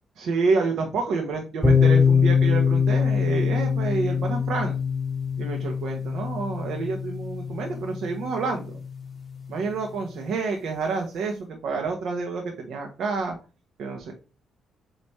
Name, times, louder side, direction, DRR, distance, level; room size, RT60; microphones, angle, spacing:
voice 1, 0.2-4.8 5.4-8.8 9.5-13.3 13.8-14.1, right 4 dB, 75° right, 2 dB, 1.3 m, -28 dB
sound 1, 1.6-9.3, left 6 dB, 10° left, 3.7 m, -23 dB
8.1 x 3.1 x 4.3 m, 0.34 s
cardioid pair, 110°, 0 cm